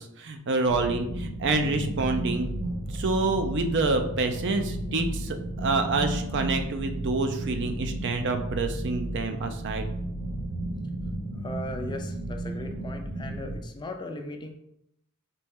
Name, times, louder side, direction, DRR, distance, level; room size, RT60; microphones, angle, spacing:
voice 1, 0.0-2.5 2.9-9.9, right 3 dB, 55° right, 7 dB, 0.5 m, -27 dB
sound 1, 0.6-13.6, right 1 dB, 75° right, 1.5 m, -33 dB
voice 2, 11.3-14.5, left 1 dB, 20° left, 5 dB, 0.4 m, -38 dB
4.3 x 3.1 x 3.5 m, 0.79 s
head